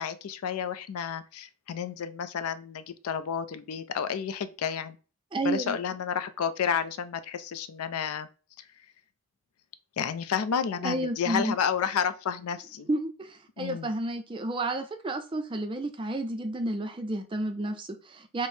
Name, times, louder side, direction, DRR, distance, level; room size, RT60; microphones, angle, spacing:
voice 1, 0.0-5.0 5.4-8.3 10.0-12.9 13.6-13.9, left 7 dB, 85° left, 0.4 m, -31 dB
voice 2, 5.3-5.8 10.7-11.6 12.9-18.5, right 2 dB, 25° right, 0.3 m, -31 dB
4.3 x 2.0 x 3.1 m
head